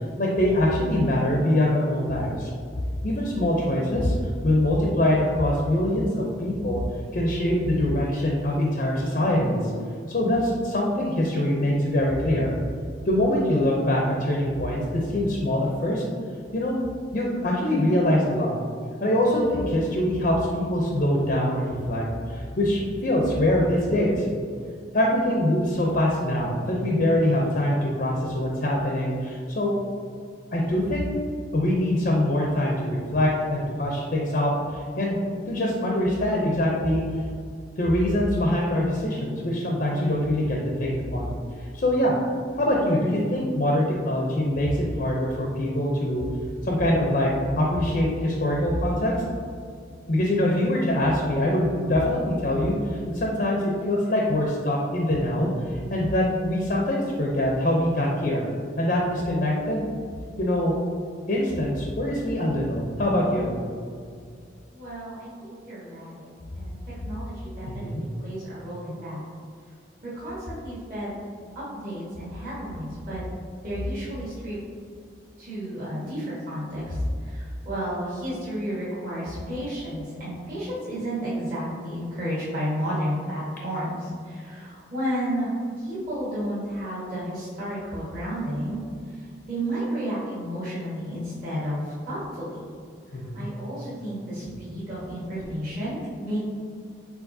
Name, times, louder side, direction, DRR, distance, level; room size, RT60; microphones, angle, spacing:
voice 1, 0.2-2.5 3.0-4.1 4.4-6.8 7.1-9.7 10.1-12.5 13.1-16.0 16.5-16.8 17.1-18.5 19.0-24.2 24.9-29.7 30.5-31.0 31.5-35.2 35.5-37.0 37.8-41.4 41.7-42.2 42.6-46.2 46.6-47.3 47.6-49.1 50.1-58.4 58.8-59.8 60.4-60.8 61.3-63.5 67.7-68.0 93.1-93.5, left 1 dB, 45° left, -2 dB, 0.5 m, -24 dB
voice 2, 64.7-66.3 66.6-66.8 67.0-69.2 70.0-71.2 71.7-73.2 73.6-74.6 75.4-76.9 77.2-88.8 89.5-92.6 93.3-96.4, equal, 45° right, -10 dB, 1.3 m, -32 dB
4.7 x 4.0 x 2.6 m, 2.2 s
head